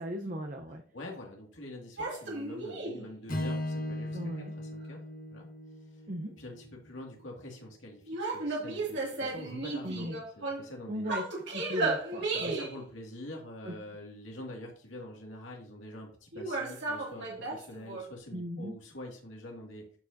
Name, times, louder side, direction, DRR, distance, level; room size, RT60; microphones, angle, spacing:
voice 1, 0.0-0.8 4.1-4.5 6.1-6.3 9.8-10.2 10.9-11.2 11.5-12.6 13.6-13.7 18.3-18.7, equal, 45° right, 3 dB, 0.8 m, -37 dB
voice 2, 0.9-4.3 4.6-5.0 5.3-5.5 6.4-11.1 12.3-20.0, left 1 dB, 75° left, -1 dB, 2.2 m, -45 dB
sound 1, 2.0-3.1 8.1-10.7 11.1-12.8 16.3-18.1, right 3 dB, 65° right, 2.5 m, -34 dB
Strum, 3.3-7.6, left 1 dB, 45° left, 1.3 m, -38 dB
12.5 x 4.9 x 2.7 m, 0.42 s
head